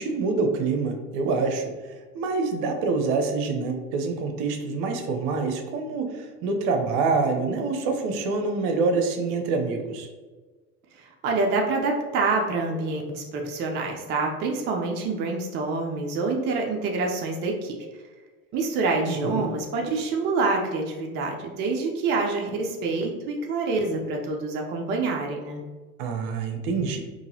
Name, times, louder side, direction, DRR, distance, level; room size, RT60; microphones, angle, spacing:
voice 1, 0.0-10.1 19.1-19.5 26.0-27.0, right 4 dB, 55° right, 5 dB, 0.7 m, -26 dB
voice 2, 10.9-17.8 18.5-25.6, right 3 dB, 25° right, 1 dB, 0.4 m, -26 dB
3.8 x 2.6 x 2.7 m, 1.3 s
hypercardioid pair, 80°, 45 cm